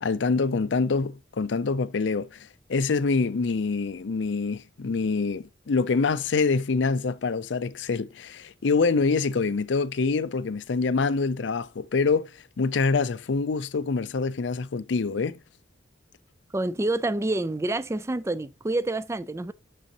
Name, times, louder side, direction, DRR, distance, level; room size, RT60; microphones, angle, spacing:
voice 1, 0.0-2.4 2.7-12.3 12.6-15.4, left 4 dB, 70° left, 0.5 m, -25 dB
voice 2, 16.5-19.5, right 2 dB, 15° right, 0.3 m, -27 dB
6.5 x 6.3 x 2.9 m
head